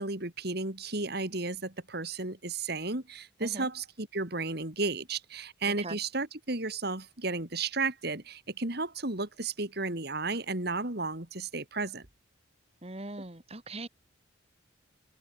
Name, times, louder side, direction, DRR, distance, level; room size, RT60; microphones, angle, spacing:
voice 1, 0.0-12.1, right 3 dB, 50° right, 3.0 m, -33 dB
voice 2, 5.7-6.0 12.8-13.9, right 2 dB, 30° right, 2.1 m, -40 dB
head